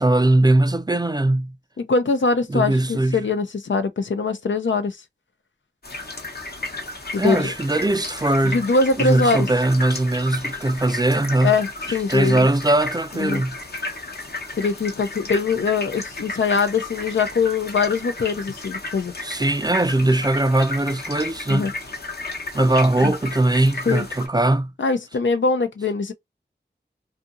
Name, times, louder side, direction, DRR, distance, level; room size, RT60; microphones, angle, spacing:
voice 1, 0.0-1.6 2.5-3.2 7.2-8.6 9.0-11.5 11.9-13.6 19.2-21.7 22.5-24.7, right 1 dB, 20° right, 0.3 m, -20 dB
voice 2, 1.8-5.0 7.1-7.5 8.4-9.5 11.4-12.5 13.1-13.4 14.6-19.1 21.5-21.7 23.0-23.1 23.9-24.1 24.8-26.1, left 4 dB, 90° left, 0.5 m, -22 dB
sound 1, 5.8-24.3, left 2 dB, 55° left, 0.8 m, -33 dB
2.7 x 2.6 x 2.3 m
wide cardioid pair, 55°, 19 cm